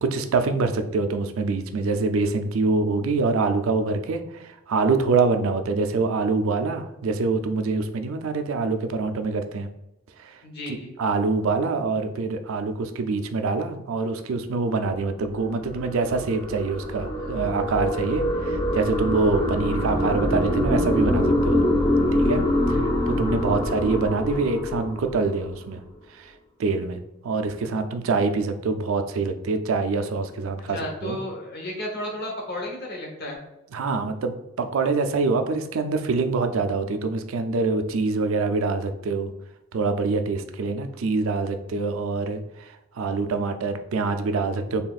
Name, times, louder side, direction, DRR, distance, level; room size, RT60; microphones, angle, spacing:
voice 1, 0.0-9.7 10.2-10.3 10.7-21.7 22.2-22.8 23.1-25.8 26.2-26.3 26.6-27.0 27.2-31.2 33.7-39.3 39.7-42.7 43.0-44.8, right 3 dB, 70° right, 7 dB, 0.4 m, -25 dB
voice 2, 10.4-10.9 30.7-33.4, left 1 dB, 50° left, 0 dB, 1.0 m, -33 dB
sound 1, 15.0-25.6, left 1 dB, 20° left, 0.6 m, -24 dB
4.0 x 3.5 x 2.4 m, 0.92 s
head